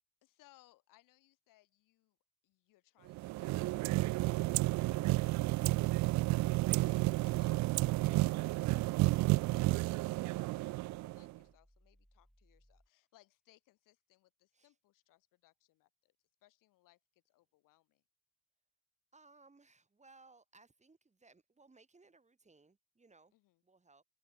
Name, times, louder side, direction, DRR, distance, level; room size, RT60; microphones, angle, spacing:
voice 1, 0.2-2.2 2.4-8.5 9.1-16.1 16.4-17.0 17.3-18.0 23.3-23.6, left 17 dB, 70° left, 6.1 m, -68 dB
sound 1, 3.1-11.4, right 20 dB, 60° right, 0.5 m, -31 dB
sound 2, 10.8-12.9, equal, ahead, 7.0 m, -69 dB
voice 2, 19.1-23.3 23.6-24.0, right 3 dB, 20° right, 7.9 m, -64 dB
supercardioid pair, 80°, 33 cm